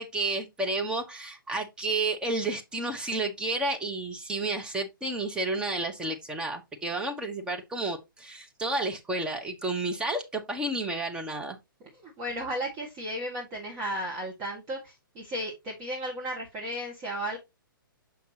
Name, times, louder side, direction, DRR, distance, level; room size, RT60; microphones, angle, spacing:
voice 1, 0.0-11.6, right 2 dB, 5° right, 1.1 m, -31 dB
voice 2, 12.0-17.4, equal, 25° right, 1.7 m, -34 dB
7.0 x 5.8 x 2.8 m
figure-of-eight pair, 125°, 12 cm